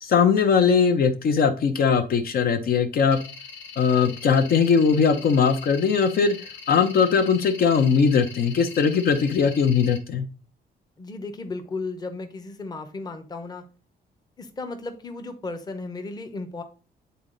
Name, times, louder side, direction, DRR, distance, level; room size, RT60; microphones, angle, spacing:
voice 1, 0.0-3.2 3.8-10.2, left 6 dB, 55° left, 7 dB, 0.8 m, -20 dB
sound 1, 3.1-10.0, left 5 dB, 85° left, 1.5 m, -42 dB
voice 2, 11.0-13.6 14.4-16.6, left 3 dB, 20° left, 7 dB, 0.9 m, -35 dB
9.4 x 4.0 x 3.9 m, 0.35 s
cardioid pair, 175°, 18 cm